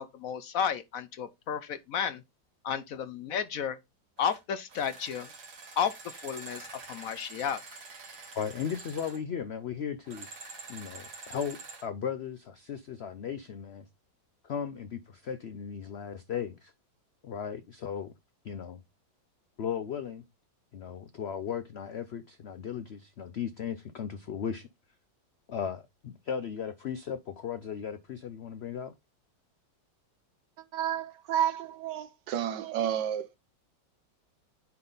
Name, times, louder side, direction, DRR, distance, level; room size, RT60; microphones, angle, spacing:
voice 1, 0.0-2.2 2.6-3.8 4.2-5.3 5.8-7.6, left 7 dB, 65° left, 0.9 m, -32 dB
sound 1, 4.2-4.4 4.7-9.2 10.1-11.9, right 4 dB, 65° right, 2.1 m, -47 dB
voice 2, 8.3-10.3 10.7-13.8 14.4-16.7 17.2-18.1 18.4-18.8 19.6-20.2 20.7-24.7 25.5-28.9, left 8 dB, 90° left, 0.5 m, -36 dB
voice 3, 30.7-33.4, right 10 dB, 80° right, 1.4 m, -31 dB
9.8 x 3.8 x 3.9 m
omnidirectional pair, 1.9 m